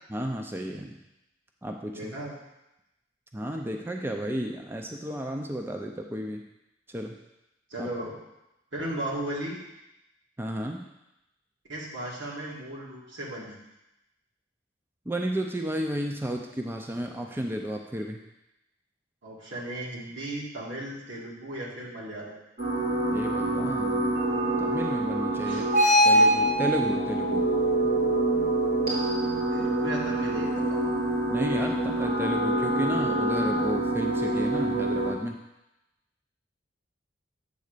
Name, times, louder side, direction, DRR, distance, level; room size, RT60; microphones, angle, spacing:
voice 1, 0.1-1.0 1.6-2.1 3.3-6.4 6.9-7.2 7.8-7.9 10.4-10.8 15.1-18.2 23.1-24.2 24.6-25.7 26.0-27.5 31.3-35.4, equal, 10° right, 2 dB, 0.5 m, -32 dB
voice 2, 1.9-2.3 7.7-8.1 8.7-9.6 11.7-13.6 19.2-22.4 25.4-25.7 29.5-30.9, right 1 dB, 75° right, -4 dB, 2.1 m, -36 dB
sound 1, 22.6-35.1, right 1 dB, 55° right, 3.0 m, -25 dB
8.3 x 3.8 x 6.6 m, 0.93 s
head